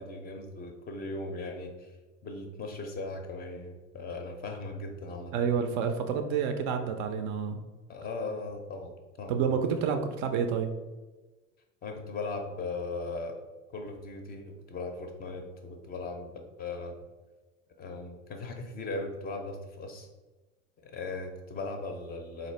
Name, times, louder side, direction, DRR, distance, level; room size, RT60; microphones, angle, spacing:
voice 1, 0.0-2.0 2.2-5.3 7.9-9.4 11.8-13.4 13.7-16.3 16.6-17.0 17.8-20.1 20.8-22.5, left 3 dB, 25° left, 4 dB, 0.5 m, -38 dB
voice 2, 5.3-7.6 9.3-10.7, right 6 dB, 45° right, 6 dB, 0.4 m, -29 dB
3.9 x 2.5 x 3.1 m, 1.2 s
figure-of-eight pair, 65°, 37 cm